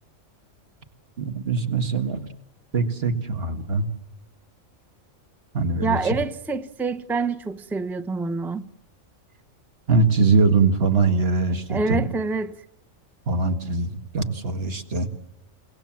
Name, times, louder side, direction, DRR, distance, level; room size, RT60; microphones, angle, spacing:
voice 1, 1.2-2.3 2.7-3.9 5.5-6.0 9.9-12.0 13.3-15.1, right 4 dB, 50° right, 2.0 m, -22 dB
voice 2, 5.8-8.7 11.7-12.6, right 4 dB, ahead, 0.6 m, -26 dB
30.0 x 18.0 x 7.3 m
omnidirectional pair, 1.3 m